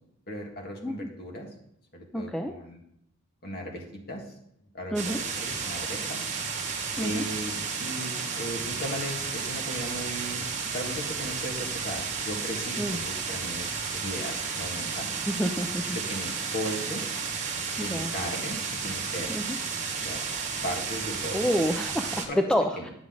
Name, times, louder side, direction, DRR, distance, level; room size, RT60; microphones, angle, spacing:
voice 1, 0.3-1.5 1.9-2.8 3.4-4.2 4.7-6.3 7.0-10.4 10.7-15.1 15.9-17.0 17.8-19.3 19.9-20.2 20.6-21.4 22.3-22.4 22.8-22.9, equal, 45° left, 1 dB, 1.7 m, -37 dB
voice 2, 2.1-2.5 4.9-5.2 7.0-7.2 12.8-13.0 15.3-16.0 17.8-18.1 19.3-19.6 21.3-22.9, equal, 5° left, 5 dB, 0.3 m, -28 dB
sound 1, 5.0-22.3, right 5 dB, 35° right, 1.3 m, -32 dB
9.7 x 7.6 x 3.7 m, 0.75 s
head